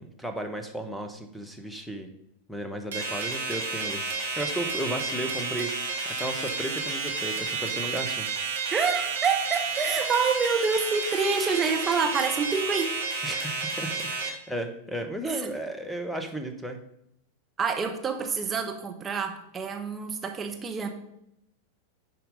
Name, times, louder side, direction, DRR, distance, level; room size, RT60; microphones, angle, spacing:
voice 1, 0.0-2.1 2.5-8.3 13.2-13.9 14.2-16.8, right 1 dB, 5° left, 6 dB, 1.1 m, -34 dB
sound 1, 2.9-14.3, right 4 dB, 65° right, 1.9 m, -31 dB
voice 2, 8.7-13.0 15.2-15.5 17.6-20.9, right 5 dB, 20° right, 4 dB, 1.1 m, -27 dB
10.5 x 4.5 x 5.3 m, 0.76 s
figure-of-eight pair, 90°, 0 cm